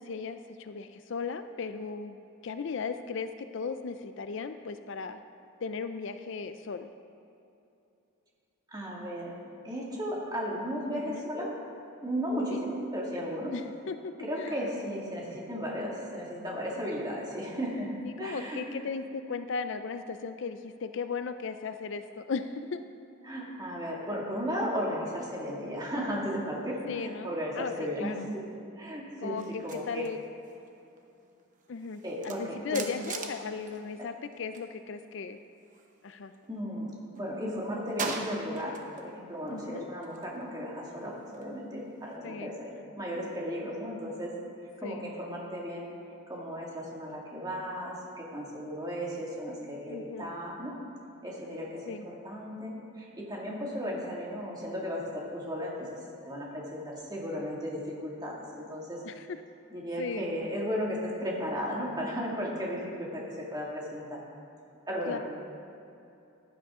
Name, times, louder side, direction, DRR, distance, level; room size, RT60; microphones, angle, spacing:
voice 1, 0.0-2.2 2.4-5.2 5.6-6.9 10.9-11.3 12.5-12.7 13.5-14.6 18.0-22.8 26.9-28.3 29.2-30.2 31.7-35.4 36.0-36.3 39.5-39.9 42.2-42.6 44.8-45.1 49.9-50.3 51.9-52.1 59.0-59.4 60.0-60.3 65.1-65.2, left 5 dB, 55° left, 9 dB, 0.4 m, -37 dB
voice 2, 8.7-9.3 9.6-11.5 12.0-13.5 14.2-17.9 18.2-18.6 23.2-28.4 28.8-29.4 29.6-30.1 32.0-32.8 36.5-44.3 44.8-45.9 46.3-50.7 51.2-56.0 56.2-59.0 59.7-64.2 64.9-65.2, equal, 20° right, -4 dB, 2.1 m, -35 dB
sound 1, 29.4-34.7 35.0-36.6 37.0-39.1 39.4-42.2, right 4 dB, 35° right, 0.9 m, -43 dB
15.5 x 11.0 x 3.7 m, 2.8 s
head